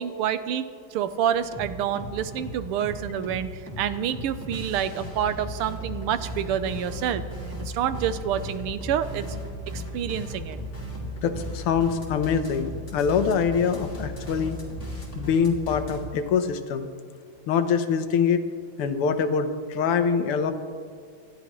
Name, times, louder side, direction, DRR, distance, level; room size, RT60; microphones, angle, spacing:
voice 1, 0.0-3.5 3.8-7.2 7.6-9.3 9.7-10.6, right 9 dB, 90° right, 12 dB, 1.6 m, -28 dB
sound 1, 1.3-16.0, equal, 30° left, 3.0 m, -36 dB
voice 2, 11.2-14.6 15.2-16.9 17.5-18.4 18.8-20.5, left 6 dB, 85° left, 9 dB, 1.8 m, -24 dB
27.5 x 12.5 x 3.1 m, 2.1 s
omnidirectional pair, 2.4 m